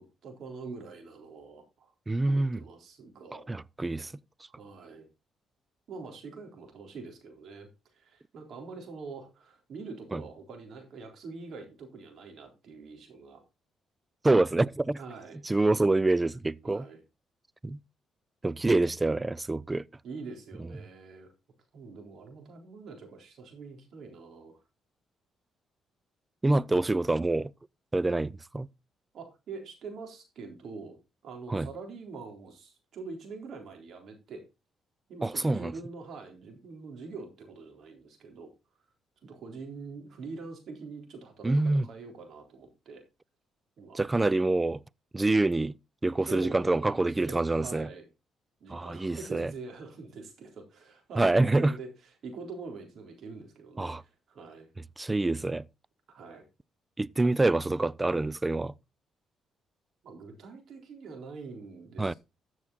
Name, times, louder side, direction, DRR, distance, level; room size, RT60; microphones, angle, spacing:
voice 1, 0.0-1.9 2.3-3.6 4.5-5.1 5.9-13.4 15.0-15.4 16.6-17.0 20.0-21.3 21.7-24.6 29.1-34.5 35.1-38.5 39.2-43.0 43.8-44.1 46.2-48.1 48.6-54.7 56.1-56.4 60.0-62.2, right 4 dB, 65° right, 3.8 m, -44 dB
voice 2, 2.1-2.6 3.5-4.1 10.1-10.2 14.2-15.0 15.4-16.8 17.6-17.8 18.4-19.9 26.4-27.5 27.9-28.7 31.5-31.7 35.2-35.7 41.4-41.9 43.9-44.8 45.1-45.8 46.0-47.9 48.7-49.5 51.2-51.8 53.8-54.0 55.0-55.6 57.0-58.7 62.0-62.1, right 2 dB, 20° right, 0.4 m, -26 dB
14.0 x 6.2 x 4.1 m
cardioid pair, 90°, 0 cm